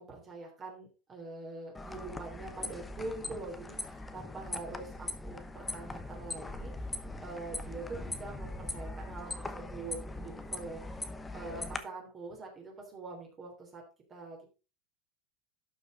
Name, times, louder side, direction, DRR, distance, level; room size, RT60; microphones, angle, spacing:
voice 1, 0.0-13.8 14.1-14.5, right 3 dB, 25° right, 0 dB, 3.4 m, -44 dB
sound 1, 1.7-11.8, left 2 dB, 10° left, 1.0 m, -41 dB
12.0 x 6.2 x 3.9 m, 0.33 s
supercardioid pair, 150°, 0 cm